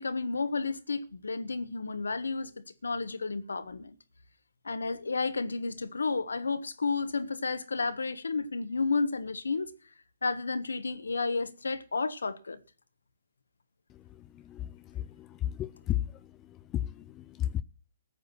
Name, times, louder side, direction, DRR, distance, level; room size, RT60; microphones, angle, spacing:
voice 1, 0.0-3.9 4.6-9.7 10.2-12.6, left 4 dB, 85° left, 1.4 m, -32 dB
voice 2, 14.5-16.0 16.7-17.6, left 12 dB, 25° left, 0.6 m, -33 dB
14.5 x 9.3 x 6.1 m
hypercardioid pair, 130°, 0 cm